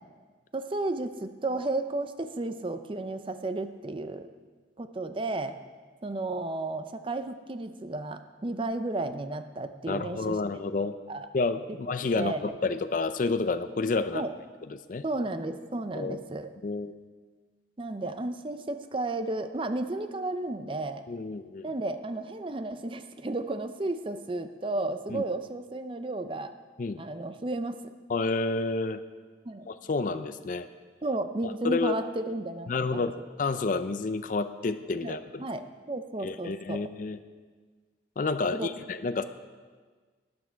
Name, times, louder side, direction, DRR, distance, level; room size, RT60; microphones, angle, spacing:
voice 1, 0.5-4.3 4.8-5.5 6.0-10.4 11.1-11.3 12.1-12.4 14.1-14.3 15.0-16.5 17.8-21.0 21.6-26.5 27.0-27.8 29.5-29.7 31.0-33.1 35.0-35.6 35.9-36.8 38.5-38.7, right 2 dB, 30° right, 9 dB, 0.5 m, -33 dB
voice 2, 9.9-10.9 11.3-14.2 14.7-15.0 15.9-16.2 16.6-16.9 21.1-21.7 25.1-25.2 26.8-27.0 28.1-29.0 29.7-30.7 31.6-32.0 32.7-33.1 33.4-35.5 36.2-37.2 38.2-39.2, left 3 dB, 45° left, 11 dB, 0.4 m, -29 dB
12.5 x 9.5 x 4.5 m, 1.5 s
head